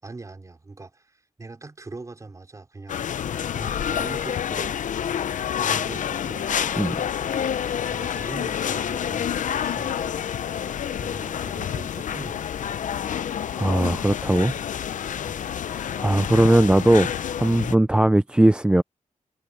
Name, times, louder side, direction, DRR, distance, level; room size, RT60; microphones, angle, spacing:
voice 1, 0.0-3.1 3.5-4.8 5.6-6.5 7.9-10.3 11.0-12.7 15.3-15.5, right 3 dB, 25° right, 5.0 m, -41 dB
sound 1, 2.9-17.7, left 9 dB, 80° left, 0.6 m, -28 dB
voice 2, 13.6-14.5 15.7-17.1 17.3-18.8, right 1 dB, 10° right, 0.4 m, -19 dB
wide cardioid pair, 165°, 13 cm